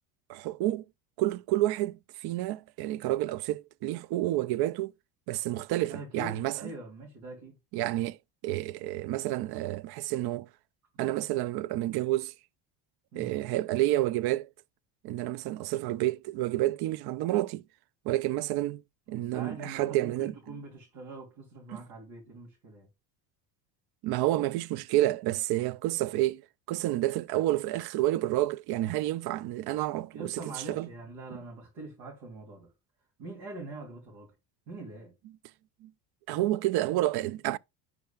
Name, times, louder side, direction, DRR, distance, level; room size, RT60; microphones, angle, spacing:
voice 1, 0.3-0.8 1.2-4.9 5.3-6.6 7.7-8.2 8.4-10.5 11.0-12.3 13.1-14.5 15.0-17.6 18.0-18.8 19.1-20.6 21.7-21.8 24.0-26.4 26.7-30.3 30.7-30.9 35.8-35.9 36.3-37.6, right 15 dB, 55° right, 0.5 m, -29 dB
voice 2, 5.9-7.5 13.1-13.3 19.1-22.9 30.1-32.7 33.2-34.3 34.7-35.2, right 2 dB, 80° right, 3.2 m, -43 dB
10.0 x 4.8 x 2.4 m
supercardioid pair, 95°, 47 cm